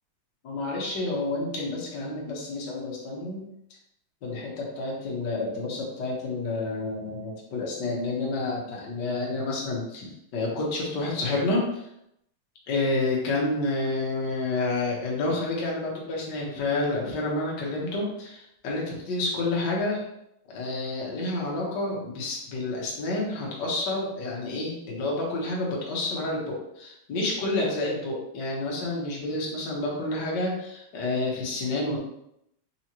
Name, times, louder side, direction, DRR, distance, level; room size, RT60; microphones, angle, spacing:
voice 1, 0.4-3.5 4.2-11.9 12.7-20.0 20.5-32.0, left 2 dB, 65° left, -3 dB, 1.0 m, -29 dB
4.8 x 3.1 x 2.9 m, 0.79 s
omnidirectional pair, 3.3 m